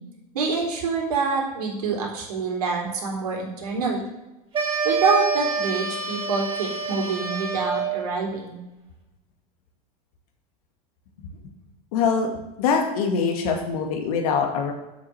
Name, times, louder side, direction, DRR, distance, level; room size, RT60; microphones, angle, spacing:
voice 1, 0.3-4.0 4.8-8.6, right 4 dB, 85° right, 0 dB, 3.4 m, -26 dB
sound 1, 4.5-8.0, right 4 dB, 25° right, 4.5 m, -27 dB
voice 2, 11.9-12.3 12.6-14.7, left 5 dB, 70° left, 2 dB, 2.2 m, -23 dB
8.1 x 6.7 x 7.8 m, 0.99 s
hypercardioid pair, 110°, 19 cm